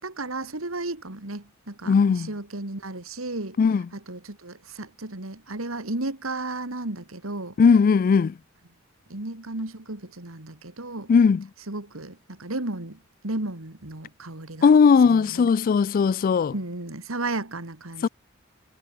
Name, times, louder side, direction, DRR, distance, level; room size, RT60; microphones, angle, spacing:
voice 1, 0.0-3.6 3.9-7.5 9.1-11.1 11.7-14.7 15.0-15.5 16.5-18.1, right 2 dB, 80° right, 2.8 m, -34 dB
voice 2, 1.9-2.3 3.6-3.8 7.6-8.3 11.1-11.4 14.6-16.5 18.0-18.1, left 5 dB, 45° left, 0.3 m, -18 dB
head